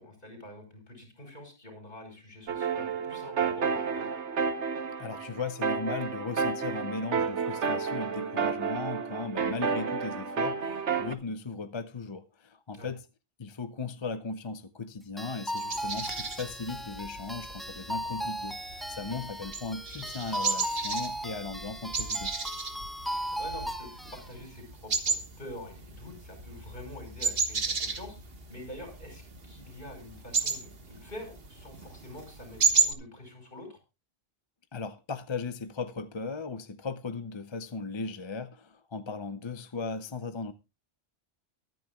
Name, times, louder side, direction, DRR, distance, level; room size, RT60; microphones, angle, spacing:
voice 1, 0.0-4.1 12.7-12.9 19.1-19.3 23.1-33.8, left 1 dB, 50° left, 5.7 m, -46 dB
sound 1, 2.5-11.1, right 5 dB, 85° right, 1.3 m, -31 dB
voice 2, 5.0-13.1 13.4-22.3 34.7-40.5, left 4 dB, 30° left, 0.6 m, -37 dB
sound 2, 15.2-24.2, equal, ahead, 0.9 m, -37 dB
sound 3, 15.6-32.9, right 4 dB, 60° right, 1.7 m, -33 dB
23.5 x 9.4 x 2.3 m
omnidirectional pair, 1.1 m